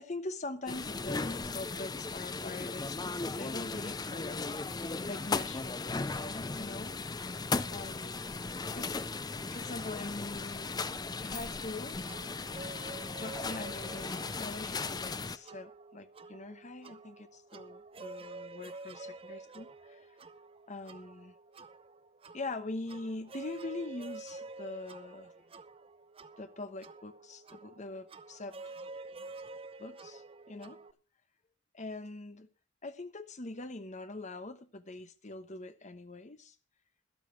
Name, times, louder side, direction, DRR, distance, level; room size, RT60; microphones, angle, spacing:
voice 1, 0.0-4.6 5.1-6.9 7.7-8.3 8.7-9.0 9.3-10.8 11.2-12.0 13.2-20.1 20.7-21.3 22.3-25.4 26.4-28.7 29.8-30.2 30.5-30.8 31.7-32.5 32.8-36.6, left 2 dB, 40° left, 10 dB, 1.0 m, -43 dB
sound 1, 0.7-15.4, left 3 dB, 20° left, 0.5 m, -37 dB
sound 2, 12.0-30.9, right 3 dB, 30° right, 0.6 m, -49 dB
12.5 x 11.5 x 4.5 m, 0.32 s
head